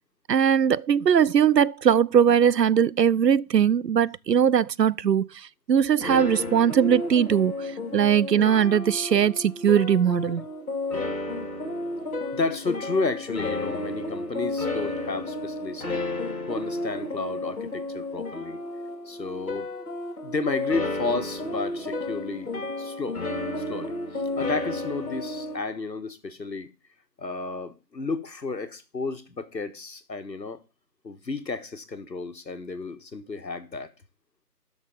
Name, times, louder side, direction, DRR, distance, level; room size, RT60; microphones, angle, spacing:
voice 1, 0.3-10.4, right 8 dB, 80° right, 0.6 m, -20 dB
sound 1, 6.0-25.6, left 2 dB, 60° left, 2.7 m, -32 dB
voice 2, 12.3-15.9 16.5-18.6 19.0-19.7 20.2-22.5 22.8-23.2 23.6-26.7 27.2-30.6 31.0-33.9, left 3 dB, 90° left, 1.7 m, -32 dB
13.5 x 6.4 x 5.5 m
figure-of-eight pair, 170°, 49 cm